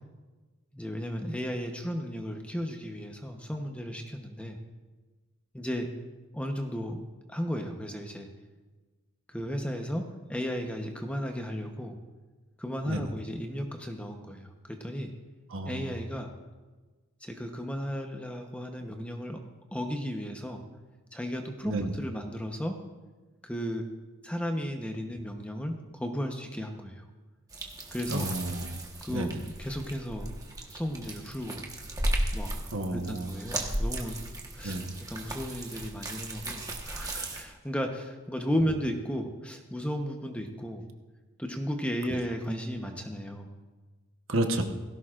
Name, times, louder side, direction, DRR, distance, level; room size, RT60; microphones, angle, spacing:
voice 1, 0.7-4.6 5.5-5.9 6.3-7.0 7.3-8.3 9.3-12.0 12.6-15.1 15.7-16.3 17.2-19.4 19.7-20.6 21.1-22.8 23.4-23.9 24.2-27.0 27.9-28.3 29.0-30.3 30.7-31.6 32.3-32.5 32.9-34.2 34.5-34.8 35.1-40.8 41.4-43.5, equal, 5° left, 3 dB, 0.9 m, -34 dB
voice 2, 15.5-15.9 21.7-21.9 28.1-28.8 29.1-29.4 32.7-33.3 34.6-34.9 44.3-44.6, right 1 dB, 65° right, 4 dB, 1.2 m, -31 dB
sound 1, 27.5-37.4, right 1 dB, 15° right, 1.3 m, -35 dB
17.5 x 16.0 x 2.5 m, 1.3 s
head